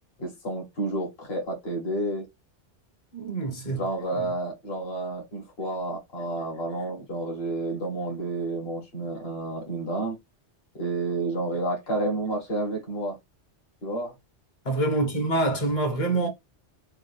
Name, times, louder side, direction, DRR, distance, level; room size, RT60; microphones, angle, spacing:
voice 1, 0.2-2.3 3.7-10.2 10.7-13.2 13.8-14.1, right 2 dB, 55° left, 1.8 m, -30 dB
voice 2, 3.1-3.9 4.1-4.3 14.6-16.3, right 2 dB, 40° left, 1.2 m, -26 dB
3.5 x 2.4 x 3.3 m
omnidirectional pair, 1.2 m